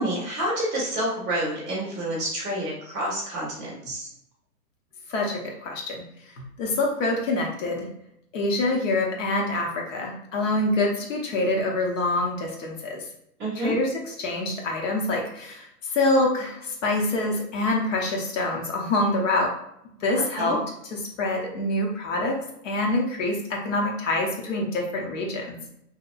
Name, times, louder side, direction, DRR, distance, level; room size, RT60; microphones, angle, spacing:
voice 1, 0.0-4.1 13.4-13.7 20.4-20.6, right 1 dB, 5° right, -17 dB, 0.3 m, -28 dB
voice 2, 5.1-6.0 6.4-7.9 8.3-13.0 13.6-19.5 20.0-20.6 20.9-22.4 22.6-25.6, left 2 dB, 55° left, 0 dB, 0.7 m, -26 dB
2.8 x 2.2 x 2.4 m, 0.77 s
hypercardioid pair, 130°, 47 cm